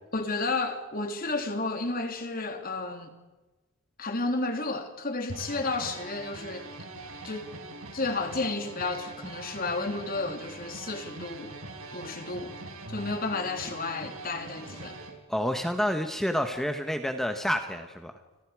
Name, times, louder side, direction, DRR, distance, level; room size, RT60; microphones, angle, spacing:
voice 1, 0.1-3.1 4.0-6.7 7.2-7.5 7.9-11.6 11.9-12.6 12.9-15.0, left 3 dB, 40° left, 3.0 m, -32 dB
sound 1, 5.3-15.1, right 2 dB, 70° right, 5.6 m, -42 dB
voice 2, 15.3-18.1, equal, ahead, 1.4 m, -29 dB
29.5 x 27.0 x 5.0 m
head